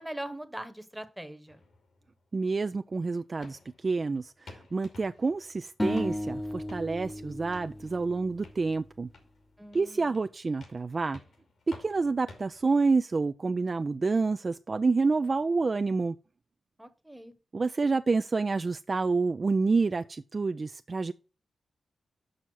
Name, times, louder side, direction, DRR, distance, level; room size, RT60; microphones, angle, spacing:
voice 1, 0.0-1.6 9.6-10.1 16.8-17.3, right 1 dB, 5° right, 1.0 m, -41 dB
sound 1, 1.5-13.0, left 2 dB, 75° left, 2.4 m, -54 dB
voice 2, 2.3-9.1 9.7-11.2 11.7-16.1 17.5-21.1, right 4 dB, 45° right, 0.3 m, -28 dB
sound 2, 5.8-9.0, left 1 dB, 15° left, 0.8 m, -35 dB
6.3 x 5.6 x 6.1 m
cardioid pair, 75°, 0 cm